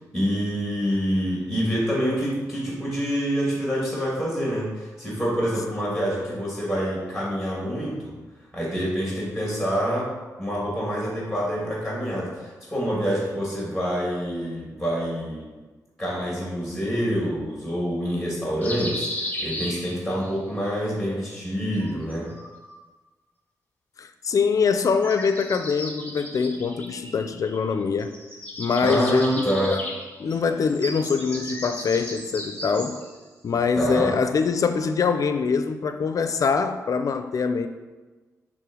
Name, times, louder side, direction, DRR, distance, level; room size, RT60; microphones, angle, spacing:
voice 1, 0.1-8.2 8.5-10.1 10.4-15.5 16.0-22.3 28.8-29.7 33.8-34.1, equal, ahead, -5 dB, 2.4 m, -26 dB
sound 1, 18.6-20.3 21.8-22.8 24.7-27.7 28.0-33.2, left 1 dB, 20° left, 1.7 m, -35 dB
voice 2, 24.0-28.1 28.6-29.8 30.2-33.0 33.4-37.7, left 5 dB, 60° left, 9 dB, 0.6 m, -24 dB
6.9 x 3.6 x 6.2 m, 1.3 s
cardioid pair, 95°, 7 cm